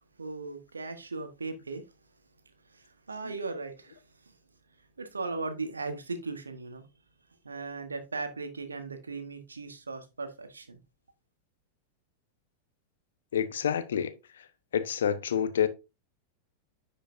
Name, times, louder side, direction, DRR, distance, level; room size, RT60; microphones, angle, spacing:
voice 1, 0.2-1.8 2.7-4.0 5.0-6.8 7.4-10.8, right 3 dB, 75° right, 1.1 m, -37 dB
voice 2, 13.3-14.1 14.7-15.7, left 8 dB, 65° left, 0.7 m, -28 dB
10.0 x 5.1 x 2.5 m
figure-of-eight pair, 90°, 0 cm